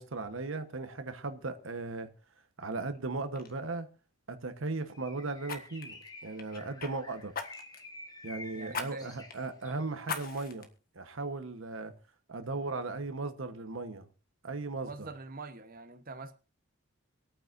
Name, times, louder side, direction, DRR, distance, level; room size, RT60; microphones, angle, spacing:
voice 1, 0.0-2.1 2.6-3.9 4.3-7.3 8.2-10.7 10.9-11.9 12.3-14.0 14.4-15.1, right 3 dB, 85° right, 8 dB, 1.2 m, -37 dB
Fire, 2.8-3.0 3.3-3.5 5.4-6.9 7.3-7.9 8.7-8.9 9.3-9.4 10.0-10.7 11.2-11.3, left 5 dB, 45° left, 1.6 m, -39 dB
Bird, 4.9-9.9, left 2 dB, 20° left, 1.3 m, -50 dB
voice 2, 8.5-9.1 14.8-16.3, right 3 dB, 45° right, 8 dB, 1.0 m, -44 dB
26.0 x 9.0 x 2.6 m, 0.34 s
head